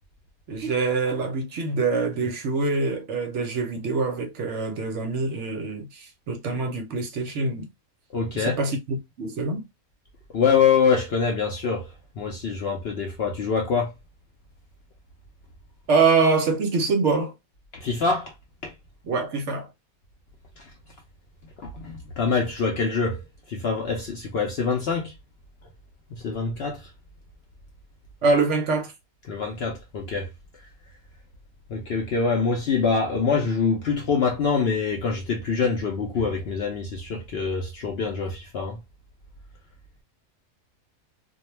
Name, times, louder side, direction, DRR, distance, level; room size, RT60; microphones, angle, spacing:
voice 1, 0.5-7.7 8.3-9.6 15.9-17.3 19.0-19.7 28.2-28.9, right 4 dB, 65° right, 0.8 m, -24 dB
voice 2, 8.1-8.6 10.3-13.9 17.7-18.3 18.6-18.7 20.6-20.7 21.6-23.2 23.5-25.1 26.1-26.9 29.3-30.3 31.7-38.8, left 5 dB, 65° left, 0.6 m, -25 dB
2.3 x 2.1 x 3.0 m
omnidirectional pair, 1.5 m